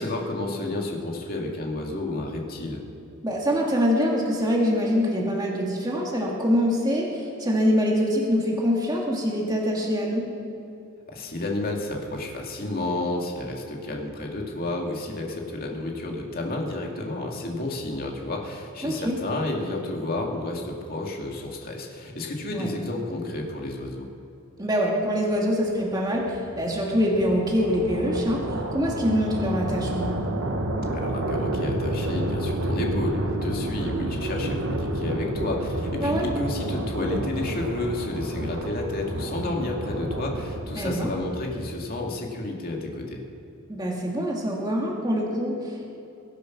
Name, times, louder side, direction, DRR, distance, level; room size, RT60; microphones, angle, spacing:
voice 1, 0.0-2.8 11.1-24.1 30.9-43.2, left 2 dB, 45° left, 0 dB, 2.4 m, -31 dB
voice 2, 3.2-10.2 18.8-19.2 22.5-22.7 24.6-28.4 28.7-30.2 36.0-36.3 40.8-41.1 43.7-45.8, equal, 20° right, -2 dB, 2.0 m, -24 dB
sound 1, 25.5-41.7, right 1 dB, 65° right, 1.2 m, -30 dB
23.0 x 8.3 x 6.0 m, 2.9 s
head